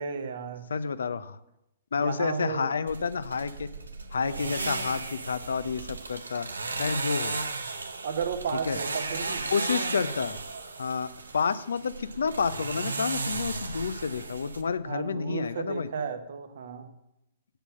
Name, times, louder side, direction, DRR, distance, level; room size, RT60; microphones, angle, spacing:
voice 1, 0.0-0.6 2.0-2.7 8.0-9.5 14.8-16.9, right 6 dB, 70° right, 7 dB, 1.2 m, -33 dB
voice 2, 0.7-1.4 1.9-3.7 4.1-6.5 6.8-7.4 8.7-8.8 9.5-10.4 10.8-15.9, left 5 dB, 80° left, 14 dB, 0.6 m, -29 dB
sound 1, 2.9-14.6, right 3 dB, 90° right, 1.0 m, -35 dB
7.6 x 6.8 x 7.5 m, 0.86 s
hypercardioid pair, 115°, 0 cm